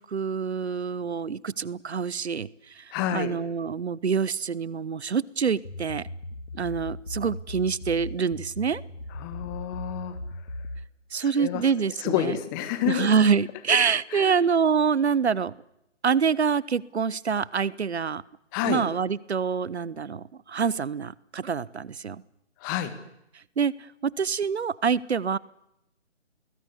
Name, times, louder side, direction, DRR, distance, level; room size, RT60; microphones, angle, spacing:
voice 1, 0.0-2.5 2.7-2.8 3.1-6.1 6.5-8.8 11.1-12.4 12.8-15.5 16.0-18.2 18.6-22.2 23.6-23.7 24.0-25.4, right 6 dB, 65° right, 22 dB, 1.0 m, -26 dB
voice 2, 2.9-3.3 9.2-10.2 11.4-11.6 12.0-13.1 14.1-14.3 18.5-18.8 22.6-22.9, left 12 dB, 15° left, 11 dB, 1.8 m, -28 dB
sound 1, 5.6-10.9, left 1 dB, 75° left, 2.9 m, -38 dB
29.5 x 20.5 x 8.3 m, 0.84 s
figure-of-eight pair, 150°, 36 cm